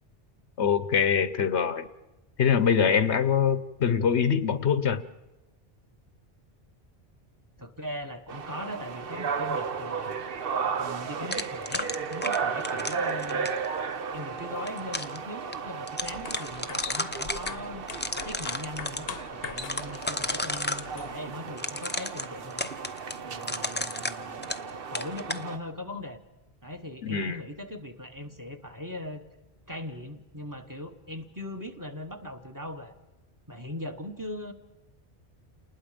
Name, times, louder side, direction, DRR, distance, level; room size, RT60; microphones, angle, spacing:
voice 1, 0.6-1.9 2.4-5.0 27.0-27.4, left 7 dB, 85° left, 14 dB, 1.3 m, -24 dB
voice 2, 7.6-10.2 10.8-13.5 14.1-17.9 18.2-22.6 23.2-24.4 24.9-26.2 26.6-29.2 29.7-33.0 33.5-34.5, left 1 dB, 20° right, 8 dB, 1.5 m, -39 dB
sound 1, 8.3-25.6, right 6 dB, 60° right, 1.1 m, -35 dB
sound 2, 11.3-13.7 14.4-15.2 15.5-15.6 15.9-17.5 17.9-19.0 19.6-20.9 21.6-24.7 24.9-25.4, left 2 dB, 10° left, 0.6 m, -33 dB
sound 3, 16.0-21.4, left 6 dB, 60° left, 1.1 m, -42 dB
29.0 x 20.0 x 5.2 m, 1.0 s
omnidirectional pair, 1.1 m